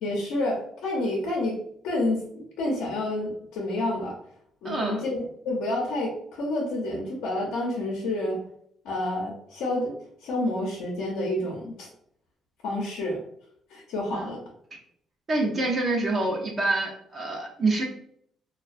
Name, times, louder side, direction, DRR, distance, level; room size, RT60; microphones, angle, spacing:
voice 1, 0.0-1.6 1.8-4.2 4.6-8.4 8.8-9.9 10.2-11.9 12.6-13.2 13.7-14.4, left 1 dB, 85° left, -3 dB, 0.6 m, -29 dB
voice 2, 4.6-5.0 14.1-14.4 15.3-17.8, right 2 dB, 40° right, -1 dB, 0.6 m, -26 dB
2.2 x 2.2 x 2.5 m, 0.65 s
cardioid pair, 100°, 0 cm